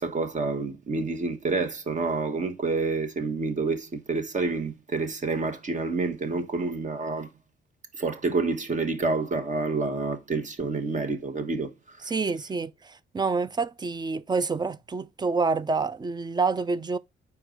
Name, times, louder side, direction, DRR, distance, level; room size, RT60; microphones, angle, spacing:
voice 1, 0.0-7.3 7.9-11.7 12.0-12.1, right 3 dB, 40° right, 1.2 m, -28 dB
voice 2, 12.0-17.0, right 4 dB, 20° right, 0.4 m, -27 dB
4.7 x 4.5 x 5.0 m
cardioid pair, 90°, 20 cm